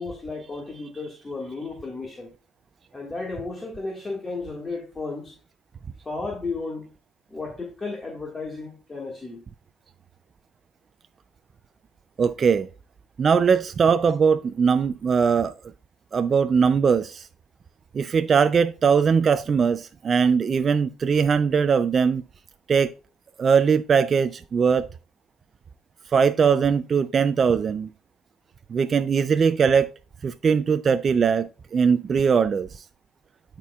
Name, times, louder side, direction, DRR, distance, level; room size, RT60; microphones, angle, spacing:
voice 1, 0.0-2.3 2.9-5.4 6.1-6.9 7.3-9.4, left 3 dB, 20° left, 1.7 m, -33 dB
voice 2, 12.2-12.7 13.2-15.5 16.1-17.3 17.9-22.2 22.7-22.9 23.4-24.9 26.1-27.9 28.7-29.9 30.2-32.8, right 6 dB, 40° right, 0.3 m, -20 dB
12.5 x 4.4 x 2.3 m
cardioid pair, 105°, 0 cm